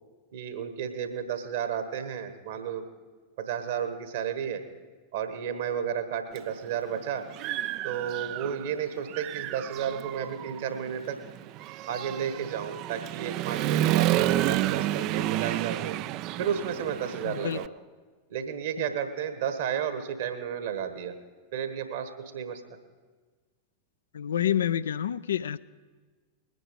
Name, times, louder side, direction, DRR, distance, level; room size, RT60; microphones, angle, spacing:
voice 1, 0.3-2.9 3.4-4.6 5.1-7.2 7.8-11.2 11.9-15.9 16.4-17.7 18.3-21.1 21.5-22.6, right 8 dB, 55° right, 9 dB, 1.3 m, -32 dB
Human voice / Motorcycle, 6.4-6.5 6.9-8.7 9.1-17.7, right 14 dB, 40° right, 0.3 m, -30 dB
voice 2, 17.2-17.6 18.8-18.9 24.1-25.6, left 10 dB, 65° left, 15 dB, 0.4 m, -28 dB
20.5 x 9.4 x 5.1 m, 1.4 s
figure-of-eight pair, 90°, 0 cm